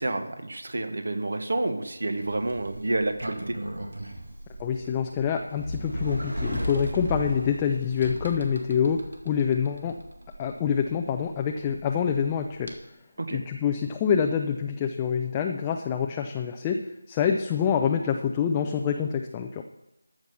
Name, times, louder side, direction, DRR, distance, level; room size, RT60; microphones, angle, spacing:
voice 1, 0.0-3.6 13.2-13.4, right 2 dB, 60° right, 8 dB, 1.5 m, -29 dB
Sliding door, 2.2-12.8, equal, 85° right, 2.1 m, -36 dB
voice 2, 4.6-10.0 10.4-12.7 13.3-19.6, left 7 dB, 15° left, 3 dB, 0.5 m, -26 dB
14.0 x 6.0 x 6.9 m, 0.92 s
figure-of-eight pair, 165°, 0 cm